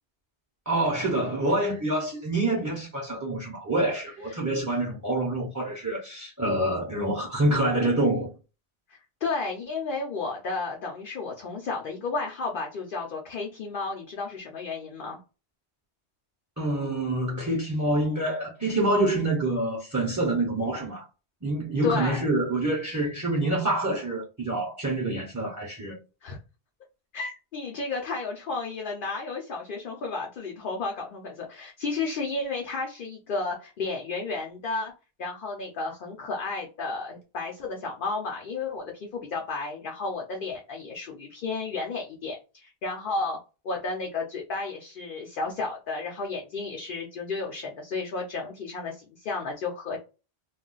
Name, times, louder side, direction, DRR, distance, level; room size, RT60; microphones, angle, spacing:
voice 1, 0.7-8.3 16.6-21.0 21.4-26.0, right 1 dB, 20° right, 0.6 m, -26 dB
voice 2, 8.9-15.2 21.8-22.3 26.2-26.4 27.1-34.9 35.2-43.4 43.6-50.0, left 3 dB, 60° left, 0.7 m, -32 dB
2.4 x 2.3 x 3.8 m
omnidirectional pair, 1.1 m